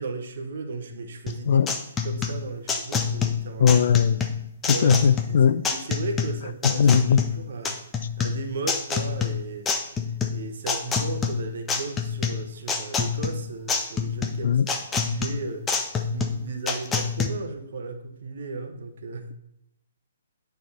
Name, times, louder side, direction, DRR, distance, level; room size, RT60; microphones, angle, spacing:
voice 1, 0.0-1.7 2.0-3.8 4.7-7.8 8.2-9.7 10.3-14.6 15.0-19.3, right 3 dB, 60° right, 0.9 m, -35 dB
sound 1, 1.3-17.3, left 5 dB, 15° left, 0.6 m, -27 dB
voice 2, 3.6-4.2 4.6-5.6 6.6-7.2 14.4-14.7, left 7 dB, 55° left, 0.3 m, -19 dB
9.2 x 3.5 x 4.2 m
figure-of-eight pair, 135°, 0 cm